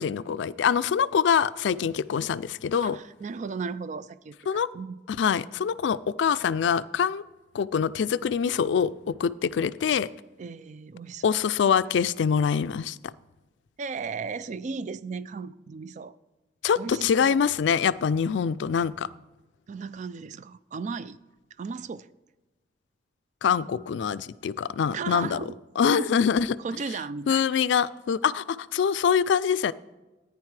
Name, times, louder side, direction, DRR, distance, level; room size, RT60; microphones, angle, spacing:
voice 1, 0.0-3.0 4.5-4.7 5.1-7.2 7.5-10.1 11.2-13.1 16.6-19.1 23.4-25.4 25.8-26.5 27.3-29.7, left 7 dB, 80° left, 0.3 m, -24 dB
voice 2, 2.8-5.0 10.4-11.2 13.8-16.2 16.8-17.4 19.7-21.2 21.6-22.1 24.9-25.6 25.9-26.2 26.6-27.5, right 5 dB, 40° right, 0.3 m, -35 dB
14.0 x 9.6 x 3.3 m
head